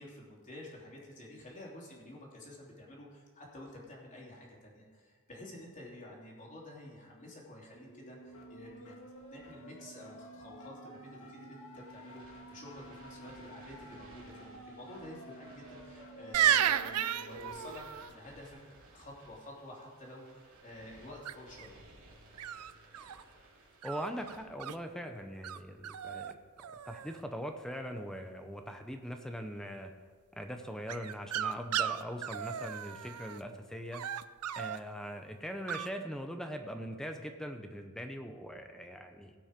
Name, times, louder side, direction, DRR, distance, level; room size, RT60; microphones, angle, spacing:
voice 1, 0.0-8.9 9.3-18.6 18.9-21.8, left 1 dB, 35° left, -3 dB, 3.1 m, -50 dB
sound 1, 7.7-17.7, right 1 dB, 65° left, 1.7 m, -51 dB
sound 2, 11.9-24.4, right 2 dB, 65° right, 2.8 m, -58 dB
sound 3, 16.3-18.1 21.2-21.7 22.4-23.2 23.8-24.8 25.4-25.6 25.8-26.3 26.6-27.2 30.9-33.4 33.9-34.8 35.7-35.9, right 10 dB, 90° right, 0.5 m, -33 dB
voice 2, 23.8-29.9 30.3-34.1 34.6-39.3, equal, 5° left, 5 dB, 0.7 m, -41 dB
17.5 x 6.2 x 5.2 m, 1.5 s
head